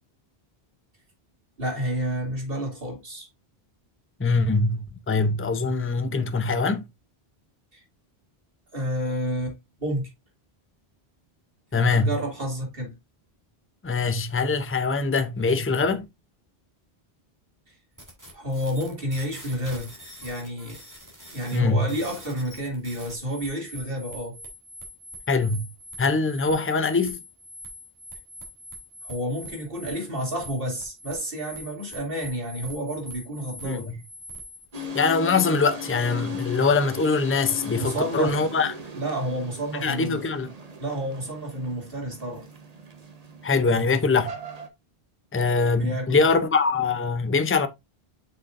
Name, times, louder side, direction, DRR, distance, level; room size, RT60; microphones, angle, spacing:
voice 1, 1.6-3.3 7.7-7.8 8.7-10.1 11.7-12.9 18.3-19.9 20.2-20.8 21.3-24.4 29.0-34.0 37.7-38.4 38.9-40.2 40.8-42.5 45.7-46.2, equal, 65° right, 3.1 m, -30 dB
voice 2, 4.2-6.8 11.7-12.1 13.8-16.1 21.5-21.9 25.3-25.7 26.0-27.2 33.6-33.9 34.9-38.7 39.8-40.5 43.4-44.3 45.3-47.7, left 4 dB, 15° left, 0.6 m, -23 dB
sound 1, 18.0-34.8, right 1 dB, 15° right, 2.8 m, -44 dB
sound 2, 34.7-44.7, left 2 dB, 40° right, 1.2 m, -38 dB
7.7 x 6.2 x 2.6 m
omnidirectional pair, 1.0 m